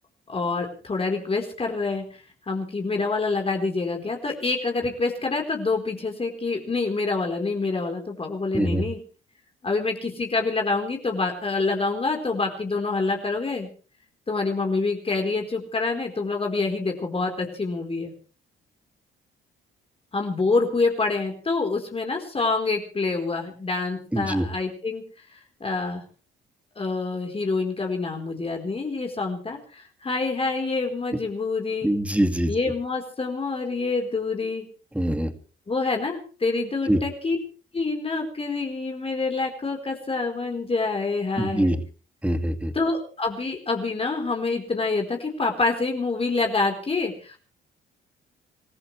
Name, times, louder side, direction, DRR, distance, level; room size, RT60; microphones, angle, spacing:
voice 1, 0.3-9.0 9.6-13.7 14.3-18.1 20.1-25.0 25.3-26.0 26.8-31.9 32.5-34.7 35.7-37.4 37.7-41.7 42.7-47.4, left 3 dB, 30° left, 2 dB, 4.4 m, -26 dB
voice 2, 24.1-24.5 31.8-32.5 34.9-35.3 36.9-37.0 41.4-41.8 42.2-42.7, right 1 dB, 5° right, 8 dB, 2.5 m, -23 dB
27.5 x 14.5 x 3.4 m, 0.39 s
cardioid pair, 90°, 20 cm